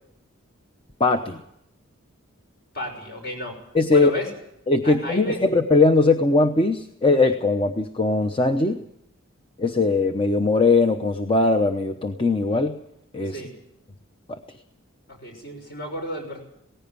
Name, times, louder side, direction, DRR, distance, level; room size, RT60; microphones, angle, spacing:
voice 1, 1.0-1.4 3.7-4.1 4.7-8.8 9.6-12.8 13.1-13.4 14.3-14.4, left 3 dB, 25° left, 6 dB, 0.8 m, -20 dB
voice 2, 2.7-3.6 3.9-4.3 4.8-5.4 13.2-13.5 15.1-16.4, left 1 dB, 50° left, 3 dB, 6.3 m, -32 dB
18.0 x 15.5 x 9.6 m, 0.76 s
head